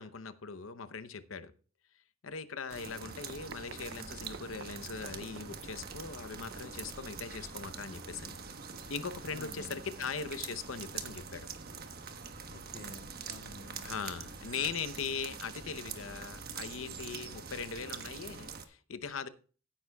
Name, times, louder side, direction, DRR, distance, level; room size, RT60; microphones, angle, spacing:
voice 1, 0.0-1.5 2.2-8.3 8.9-11.5 13.8-19.3, left 5 dB, 85° left, 0.8 m, -40 dB
sound 1, 2.7-18.6, right 5 dB, 50° right, 1.2 m, -44 dB
Run, 3.1-8.5, right 5 dB, 80° right, 0.6 m, -54 dB
voice 2, 9.3-9.8 12.5-13.9, left 4 dB, 50° left, 0.4 m, -51 dB
15.5 x 10.0 x 2.3 m
head